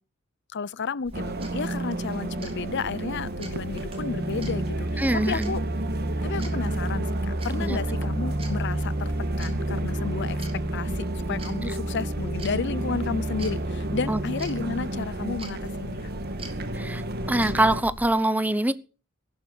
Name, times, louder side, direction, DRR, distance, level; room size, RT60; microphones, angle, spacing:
voice 1, 0.5-5.6 6.2-9.1 9.4-10.4 10.7-16.1, left 5 dB, 60° left, 0.7 m, -32 dB
sound 1, 1.0-18.1, right 1 dB, 30° right, 3.3 m, -42 dB
sound 2, 1.1-17.8, right 1 dB, 50° right, 1.6 m, -30 dB
sound 3, 2.4-17.3, right 1 dB, 75° right, 4.8 m, -53 dB
voice 2, 5.0-5.6 7.6-7.8 11.6-11.7 14.1-14.2 16.7-17.0 17.3-18.7, right 1 dB, 10° right, 0.8 m, -24 dB
15.0 x 11.5 x 6.2 m
head